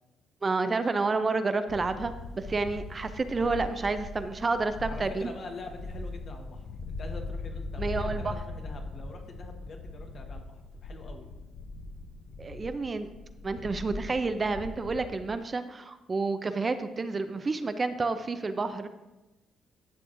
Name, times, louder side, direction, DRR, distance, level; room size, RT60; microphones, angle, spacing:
voice 1, 0.4-5.3 7.8-8.4 12.4-13.1 13.4-18.9, right 3 dB, 30° right, 10 dB, 0.4 m, -30 dB
sound 1, 1.7-15.3, left 3 dB, 75° left, 0.6 m, -40 dB
voice 2, 4.9-11.3, left 3 dB, 55° left, 3 dB, 1.3 m, -45 dB
11.5 x 6.2 x 2.6 m, 1.1 s
cardioid pair, 90°, 0 cm